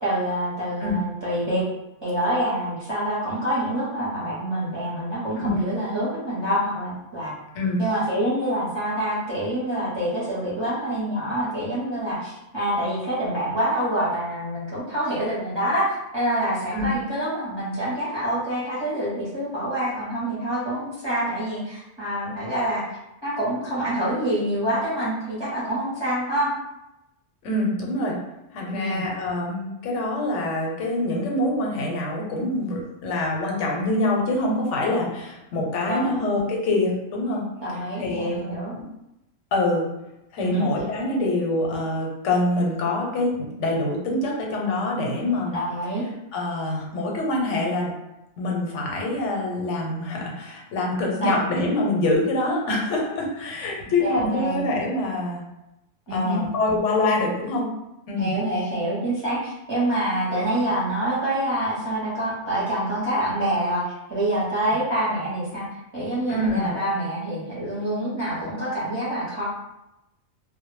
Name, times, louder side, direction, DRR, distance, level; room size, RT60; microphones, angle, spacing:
voice 1, 0.0-1.6 2.0-7.3 7.8-22.9 23.2-26.5 28.7-29.0 35.8-36.2 37.6-38.7 40.4-40.7 45.5-46.0 51.2-51.4 54.0-54.6 56.1-56.4 58.2-63.8 64.1-65.6 65.9-69.4, right 1 dB, 30° right, -9 dB, 0.5 m, -26 dB
voice 2, 27.4-28.1 28.5-37.4 37.7-38.9 39.5-39.8 40.3-45.6 46.3-47.9 48.4-55.4 56.1-57.7 58.1-58.3 66.3-66.7, left 2 dB, 85° left, -1 dB, 0.9 m, -25 dB
2.0 x 2.0 x 3.1 m, 0.90 s
omnidirectional pair, 1.2 m